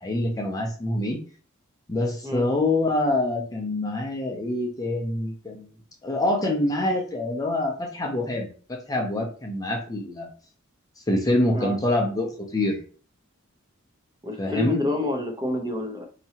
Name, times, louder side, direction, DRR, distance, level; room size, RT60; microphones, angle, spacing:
voice 1, 0.0-1.2 1.9-5.7 6.0-10.3 11.1-12.8 14.4-14.8, left 1 dB, 15° left, 1 dB, 0.6 m, -25 dB
voice 2, 14.2-16.0, left 2 dB, 20° right, 2 dB, 0.8 m, -28 dB
4.5 x 2.9 x 2.8 m, 0.40 s
head